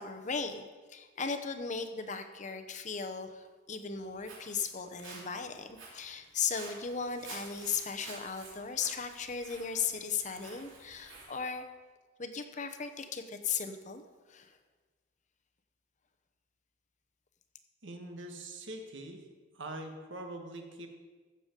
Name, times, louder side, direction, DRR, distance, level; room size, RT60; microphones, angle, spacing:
voice 1, 0.0-11.6 12.2-14.0 14.3-14.5, left 6 dB, 40° left, 7 dB, 0.8 m, -37 dB
Walk footsteps, 3.9-11.6, right 3 dB, 85° right, 2.9 m, -51 dB
voice 2, 17.8-19.2 19.5-20.9, right 1 dB, 70° right, 4 dB, 1.4 m, -43 dB
15.0 x 7.0 x 5.2 m, 1.4 s
head